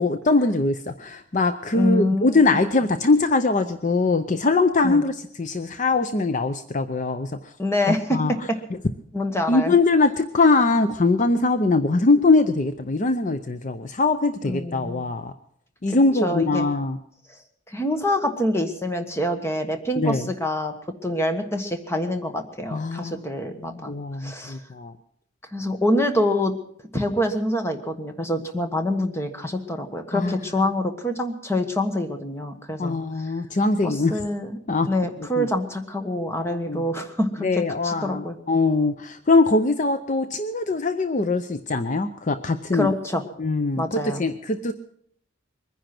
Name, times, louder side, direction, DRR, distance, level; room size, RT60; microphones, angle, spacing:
voice 1, 0.0-7.3 7.9-8.3 9.5-15.3 15.8-17.0 20.0-20.3 22.7-23.2 23.6-24.9 30.1-30.3 32.8-34.1 34.7-34.9 35.4-35.5 36.4-36.8 37.4-42.9 43.4-44.7, left 3 dB, 40° left, 10 dB, 0.6 m, -22 dB
voice 2, 1.7-2.5 4.8-5.0 7.6-8.4 9.1-9.7 14.4-15.1 15.9-16.7 17.7-20.7 21.0-23.9 24.2-24.6 25.5-26.5 26.9-33.3 33.8-34.6 34.9-38.4 42.7-43.2 43.8-44.2, left 1 dB, 15° left, 6 dB, 1.4 m, -26 dB
22.5 x 10.0 x 6.0 m, 0.66 s
head